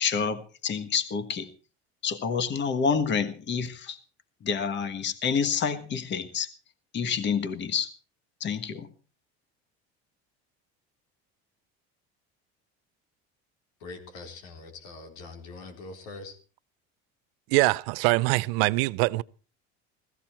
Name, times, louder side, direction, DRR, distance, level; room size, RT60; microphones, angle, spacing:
voice 1, 0.0-1.5 2.0-4.0 4.4-6.5 6.9-7.9 8.4-8.9, left 6 dB, 40° left, 1.5 m, -28 dB
voice 2, 13.8-16.4, left 3 dB, 80° left, 4.2 m, -43 dB
voice 3, 17.5-19.2, right 22 dB, 90° right, 0.6 m, -23 dB
17.0 x 14.5 x 4.4 m
cardioid pair, 120°, 29 cm